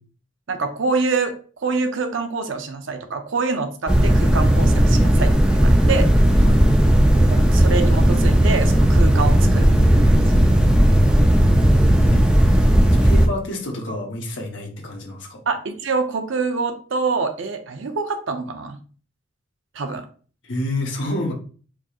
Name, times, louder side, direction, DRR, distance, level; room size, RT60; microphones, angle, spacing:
voice 1, 0.5-1.4 1.6-6.1 7.3-10.4 15.5-18.8 19.7-20.1, right 4 dB, 75° right, 6 dB, 0.6 m, -25 dB
sound 1, 3.9-13.3, right 1 dB, 5° right, 0.4 m, -15 dB
voice 2, 6.4-6.9 12.1-12.3 13.0-15.4 20.4-21.3, left 1 dB, 65° left, 1 dB, 1.0 m, -29 dB
4.7 x 2.9 x 2.4 m, 0.40 s
head